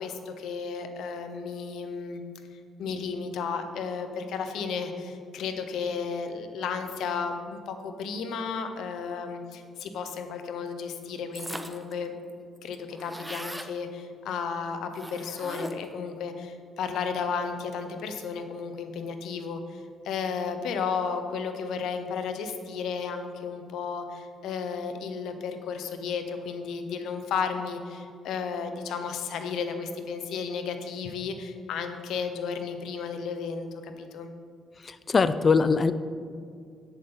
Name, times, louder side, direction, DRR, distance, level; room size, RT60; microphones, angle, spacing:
voice 1, 0.0-2.2 2.5-12.1 12.6-34.3, left 5 dB, 80° left, 7 dB, 0.9 m, -33 dB
sound 1, 11.3-11.9 12.3-12.4 12.6-13.7 14.9-16.0, right 1 dB, 5° right, 0.7 m, -39 dB
voice 2, 34.8-35.9, left 4 dB, 40° left, 13 dB, 0.5 m, -22 dB
10.5 x 8.3 x 4.0 m, 2.3 s
cardioid pair, 90°, 0 cm